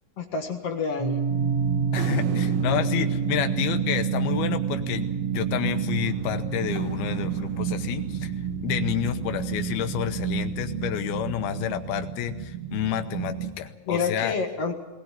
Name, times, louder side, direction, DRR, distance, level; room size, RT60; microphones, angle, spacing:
voice 1, 0.2-1.2 13.9-14.8, left 5 dB, 50° left, 4 dB, 2.1 m, -28 dB
sound 1, 1.0-11.2, right 5 dB, 10° right, 4.3 m, -30 dB
sound 2, 1.3-13.5, right 9 dB, 50° right, 2.4 m, -31 dB
voice 2, 1.9-8.3 8.6-14.4, left 11 dB, 90° left, 8 dB, 3.0 m, -29 dB
sound 3, 2.0-4.6 6.1-8.2, right 7 dB, 85° right, 3.4 m, -41 dB
20.0 x 18.0 x 8.8 m, 1.1 s
omnidirectional pair, 4.3 m